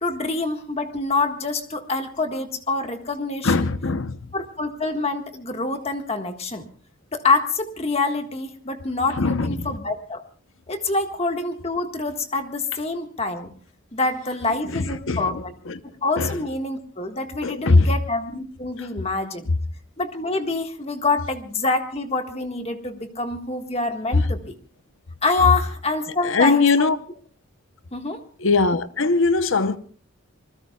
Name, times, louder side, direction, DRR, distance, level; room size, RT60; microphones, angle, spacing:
voice 1, 0.0-3.7 4.3-6.6 7.1-10.2 10.7-13.5 13.9-15.5 16.0-19.5 20.0-24.6 25.2-26.9 27.9-28.2, left 3 dB, 30° left, 1.6 m, -26 dB
voice 2, 3.4-4.2 9.2-9.7 14.6-15.8 16.2-16.4 17.4-17.9 18.8-18.9 24.1-24.2 26.2-27.0 28.4-29.8, left 3 dB, 70° left, 0.8 m, -21 dB
27.0 x 20.5 x 2.3 m
head